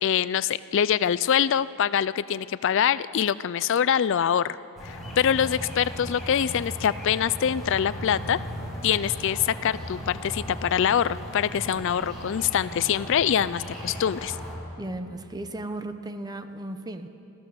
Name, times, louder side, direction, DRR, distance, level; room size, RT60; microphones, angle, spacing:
voice 1, 0.0-4.6 4.8-8.4 8.8-14.4, left 8 dB, 60° left, 17 dB, 0.4 m, -24 dB
sound 1, 4.8-14.6, equal, ahead, 5.7 m, -37 dB
voice 2, 14.8-17.1, right 1 dB, 20° right, 9 dB, 0.8 m, -35 dB
26.0 x 15.0 x 6.9 m, 2.8 s
head